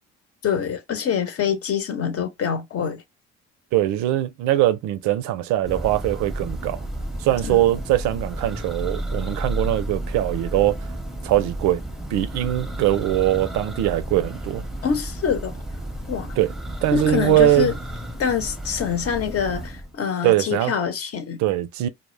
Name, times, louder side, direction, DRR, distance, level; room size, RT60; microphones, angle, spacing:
voice 1, 0.4-3.0 7.4-7.6 14.8-15.5 16.1-16.3 16.9-17.7 18.2-21.4, left 7 dB, 50° left, 0.8 m, -25 dB
voice 2, 3.7-6.8 7.2-10.8 11.2-11.8 12.1-14.6 16.4-16.5 16.8-17.7 20.2-20.7 21.4-21.9, right 14 dB, 75° right, 0.4 m, -21 dB
Church bell, 5.6-19.9, right 1 dB, ahead, 0.7 m, -32 dB
2.1 x 2.0 x 3.1 m
supercardioid pair, 75°, 29 cm